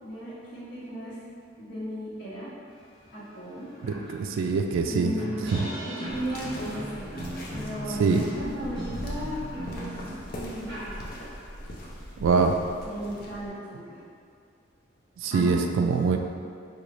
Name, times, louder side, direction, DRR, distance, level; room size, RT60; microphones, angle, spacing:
voice 1, 0.0-1.2 1.6-2.5 3.1-3.7 4.9-5.5 5.9-7.1 7.5-9.8 10.3-11.1 12.8-14.0 15.3-16.2, equal, 70° left, -12 dB, 0.9 m, -36 dB
sound 1, 3.0-3.1 3.5-11.5, right 1 dB, 55° right, 1.0 m, -39 dB
voice 2, 4.1-5.1 8.0-8.2 12.2-12.5 15.2-16.2, right 4 dB, 85° right, 5 dB, 0.3 m, -23 dB
sound 2, 6.1-13.5, equal, 45° left, 0.5 m, -40 dB
3.9 x 2.3 x 3.1 m, 2.3 s
head